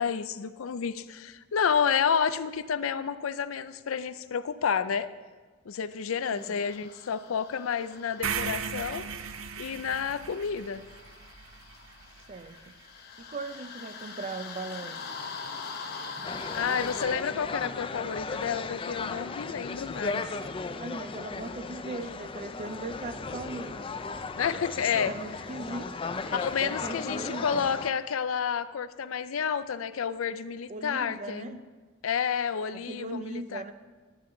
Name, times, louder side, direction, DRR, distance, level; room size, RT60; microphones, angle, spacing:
voice 1, 0.0-5.1 5.7-9.1 9.6-10.8 16.5-20.3 24.3-25.1 26.3-31.6 32.0-33.6, left 7 dB, 80° left, 13 dB, 0.5 m, -30 dB
sound 1, 6.4-17.1, left 5 dB, 50° left, 0.9 m, -43 dB
sound 2, 8.2-12.4, right 7 dB, 80° right, 0.5 m, -36 dB
voice 2, 12.3-12.7 13.2-15.0 20.7-23.9 24.9-25.9 26.6-27.7 30.7-31.6 32.7-33.7, right 2 dB, 35° right, 10 dB, 0.5 m, -39 dB
Crowd in Festa Major de Gracia, 16.2-27.9, left 4 dB, 25° left, 0.4 m, -36 dB
11.5 x 9.7 x 3.9 m, 1.4 s
head